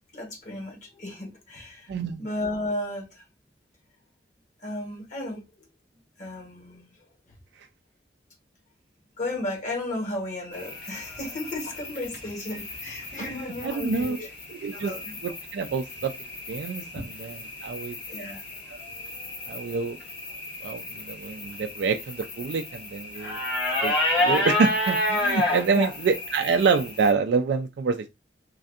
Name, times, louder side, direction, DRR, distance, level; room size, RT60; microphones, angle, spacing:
voice 1, 0.1-1.9 2.2-3.2 4.6-5.4 6.2-6.9 9.2-14.3 14.6-15.1 18.1-18.4 25.7-25.9, left 1 dB, 45° left, 0.9 m, -34 dB
voice 2, 1.9-2.2 13.2-14.2 14.6-14.9 15.2-16.1 16.5-18.0 19.5-20.0 20.6-23.4 23.8-28.1, right 5 dB, 75° right, 0.3 m, -27 dB
sound 1, 10.5-27.1, left 1 dB, 70° left, 1.3 m, -31 dB
3.2 x 2.6 x 2.4 m
head